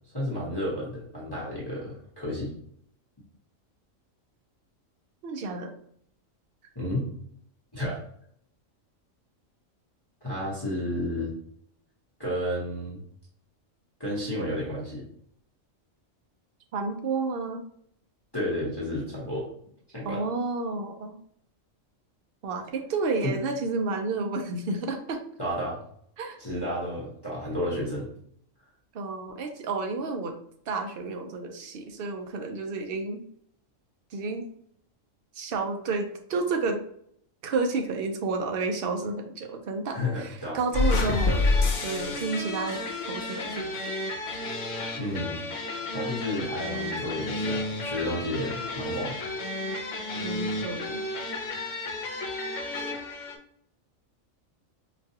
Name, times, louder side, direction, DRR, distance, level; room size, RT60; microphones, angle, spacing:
voice 1, 0.1-2.5 6.7-7.1 7.7-8.0 10.2-11.3 12.2-13.0 14.0-15.0 18.3-19.5 19.9-20.2 23.2-23.4 25.4-25.8 26.4-28.1 39.9-40.6 45.0-45.4 45.9-49.2, left 1 dB, 20° left, -7 dB, 1.0 m, -31 dB
voice 2, 5.2-5.7 16.7-17.6 20.0-21.2 22.4-25.2 26.2-26.4 28.9-30.3 30.7-33.2 34.1-34.5 35.3-36.8 37.4-41.5 41.8-42.8 43.1-43.7 50.2-51.0, right 3 dB, 55° right, 4 dB, 0.7 m, -30 dB
sound 1, 40.7-53.4, left 2 dB, 70° left, 1.1 m, -30 dB
5.1 x 2.3 x 2.8 m, 0.66 s
omnidirectional pair, 1.4 m